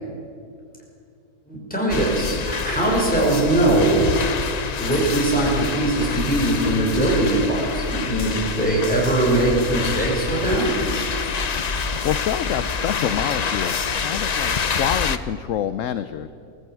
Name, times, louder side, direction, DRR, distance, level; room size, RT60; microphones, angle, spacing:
voice 1, 1.5-4.1 4.8-10.7, right 2 dB, 5° left, -4 dB, 5.9 m, -21 dB
sound 1, 1.9-15.2, left 5 dB, 45° left, 0.5 m, -26 dB
sound 2, 6.0-11.5, equal, 20° right, 6.1 m, -43 dB
voice 2, 12.0-16.3, left 10 dB, 65° left, 12 dB, 0.9 m, -27 dB
20.5 x 14.0 x 9.1 m, 2.5 s
omnidirectional pair, 1.6 m